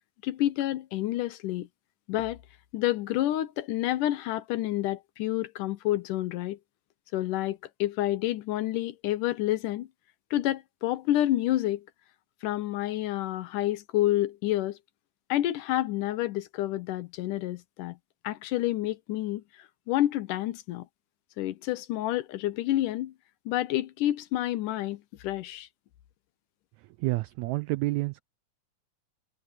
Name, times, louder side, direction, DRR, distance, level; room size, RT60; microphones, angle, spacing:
voice 1, 0.2-1.7 2.1-2.4 2.7-6.6 7.1-9.9 10.3-11.8 12.4-14.8 15.3-18.0 18.2-19.4 19.9-20.9 21.4-23.1 23.5-25.7, left 14 dB, 80° left, 2.4 m, -29 dB
voice 2, 26.8-28.2, right 20 dB, 85° right, 1.6 m, -29 dB
omnidirectional pair, 3.7 m